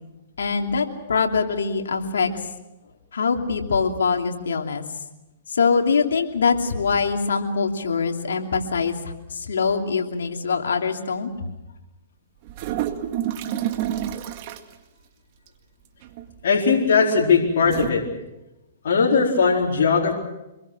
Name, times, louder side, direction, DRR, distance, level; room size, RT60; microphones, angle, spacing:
voice 1, 0.4-2.5 3.1-4.8 5.5-11.3, left 5 dB, 90° left, 3 dB, 2.9 m, -23 dB
sound 1, 12.4-14.7 16.0-16.4 17.6-17.9, right 11 dB, 45° right, 2.0 m, -28 dB
voice 2, 16.4-18.0 18.8-20.1, left 5 dB, 70° left, -3 dB, 4.3 m, -19 dB
27.0 x 22.0 x 6.2 m, 0.97 s
hypercardioid pair, 140°, 0 cm